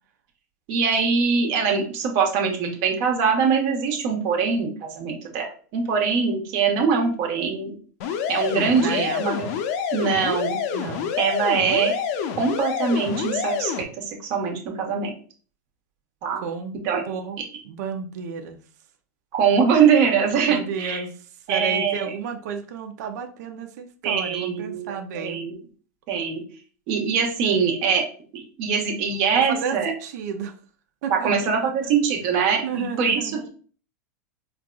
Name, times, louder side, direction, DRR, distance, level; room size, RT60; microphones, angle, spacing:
voice 1, 0.7-7.7 8.3-9.5 9.9-10.6 11.2-12.0 12.4-14.0 14.3-15.1 16.2-16.4 16.8-17.0 19.3-21.0 21.5-22.1 24.0-25.6 26.1-26.4 26.9-28.0 28.3-29.9 31.1-33.2, right 6 dB, 50° right, 1 dB, 1.1 m, -22 dB
sound 1, 8.0-13.8, left 7 dB, 55° left, 0.6 m, -27 dB
voice 2, 8.5-9.4 10.7-11.1 16.4-17.4 17.6-18.6 20.4-25.4 29.3-30.6 31.0-31.9 32.6-33.5, right 6 dB, 70° right, 6 dB, 0.6 m, -32 dB
4.5 x 2.5 x 2.3 m, 0.42 s
hypercardioid pair, 120°, 10 cm